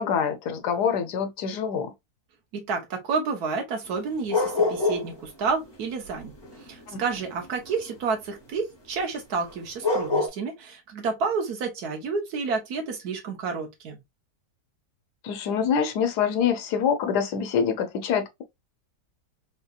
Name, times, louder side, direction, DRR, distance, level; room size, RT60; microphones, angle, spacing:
voice 1, 0.0-1.9 6.9-7.0 15.2-18.4, left 7 dB, 90° left, 1.3 m, -25 dB
voice 2, 2.5-6.3 6.6-14.0, right 4 dB, 75° right, 1.4 m, -30 dB
sound 1, 3.9-5.2 5.5-7.9 9.5-9.6 9.8-10.3, left 3 dB, 20° left, 0.7 m, -26 dB
3.8 x 2.8 x 2.3 m
omnidirectional pair, 1.7 m